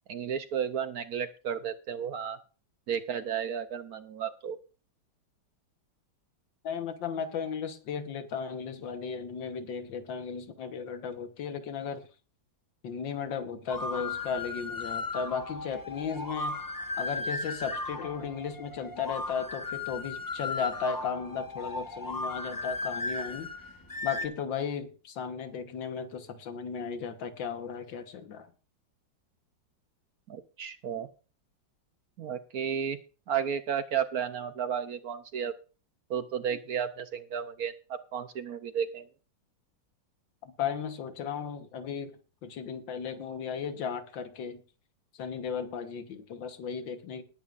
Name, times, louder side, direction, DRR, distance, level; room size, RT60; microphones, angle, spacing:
voice 1, 0.1-2.4 2.9-4.6 30.3-31.1 32.2-33.0 33.3-35.5 36.1-39.1, right 8 dB, 65° right, 1.0 m, -33 dB
voice 2, 6.6-12.1 12.8-16.6 17.0-23.5 24.0-28.5 40.4-42.2 42.4-44.6 45.1-47.2, left 6 dB, 75° left, 2.0 m, -35 dB
sound 1, 13.7-24.3, left 3 dB, 20° left, 0.5 m, -36 dB
20.0 x 9.5 x 2.5 m
omnidirectional pair, 2.1 m